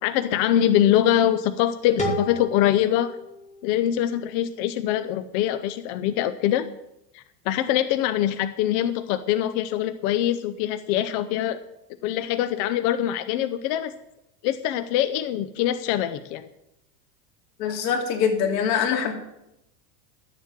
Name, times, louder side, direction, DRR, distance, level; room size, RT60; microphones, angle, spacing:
voice 1, 0.0-3.1 3.6-6.7 7.1-11.6 12.0-13.9 14.4-16.5, left 11 dB, 35° left, 11 dB, 0.4 m, -23 dB
sound 1, 2.0-4.8, equal, 15° left, 1.8 m, -33 dB
voice 2, 17.6-19.1, left 7 dB, 70° left, 3 dB, 2.9 m, -23 dB
11.5 x 7.4 x 7.3 m, 0.86 s
supercardioid pair, 150°, 50 cm